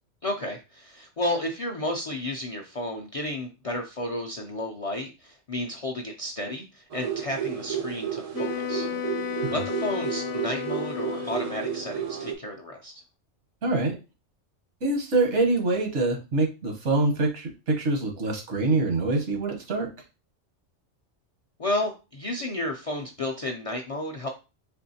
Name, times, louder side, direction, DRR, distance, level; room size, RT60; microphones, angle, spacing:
voice 1, 0.2-9.2 9.5-13.0 21.6-24.3, left 1 dB, 55° left, 2 dB, 0.4 m, -32 dB
sound 1, 6.9-12.4, right 9 dB, 60° right, 0.4 m, -32 dB
Wind instrument woodwind instrument, 8.3-11.9, left 10 dB, 70° left, 0.9 m, -33 dB
voice 2, 13.6-14.0 14.8-19.9, right 2 dB, 80° right, 3 dB, 1.3 m, -25 dB
4.2 x 3.0 x 2.7 m, 0.30 s
omnidirectional pair, 1.2 m